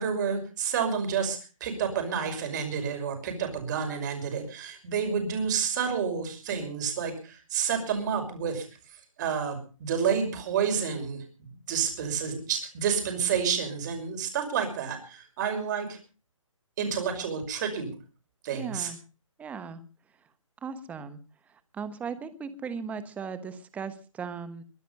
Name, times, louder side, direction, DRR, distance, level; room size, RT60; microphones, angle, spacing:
voice 1, 0.0-11.2 11.7-16.0 16.8-17.9 18.4-18.9, right 7 dB, 35° right, 6 dB, 5.8 m, -29 dB
voice 2, 18.5-19.0 19.4-19.8 20.6-21.2 21.7-24.6, right 6 dB, 10° right, 13 dB, 1.3 m, -37 dB
23.0 x 10.0 x 5.5 m, 0.37 s
figure-of-eight pair, 140°, 17 cm